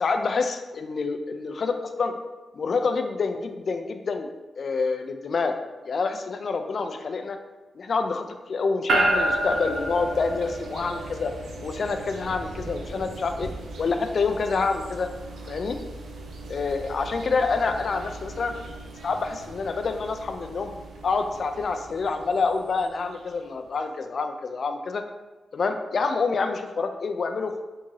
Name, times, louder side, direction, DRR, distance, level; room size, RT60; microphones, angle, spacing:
voice 1, 0.0-2.1 2.5-4.3 4.6-5.6 5.8-7.4 7.8-11.3 11.6-13.5 13.8-15.1 15.5-15.8 16.5-18.6 19.0-20.7 21.0-25.0 25.5-27.6, left 4 dB, 60° left, 6 dB, 0.3 m, -27 dB
sound 1, 8.9-23.2, right 1 dB, 90° right, 0.5 m, -33 dB
3.5 x 2.7 x 3.1 m, 1.2 s
cardioid pair, 85°, 0 cm